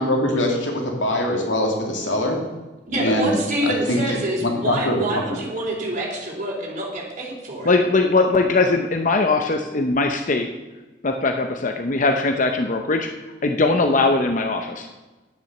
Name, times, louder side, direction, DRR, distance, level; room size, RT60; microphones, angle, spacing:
voice 1, 0.0-2.4 3.0-3.3 3.6-5.4, left 1 dB, 90° left, 1 dB, 2.3 m, -23 dB
voice 2, 2.9-7.7, right 1 dB, 40° right, -2 dB, 3.6 m, -27 dB
voice 3, 7.6-10.5 11.0-13.1 13.4-14.9, left 3 dB, 45° left, 5 dB, 0.7 m, -20 dB
10.5 x 8.8 x 6.6 m, 1.2 s
head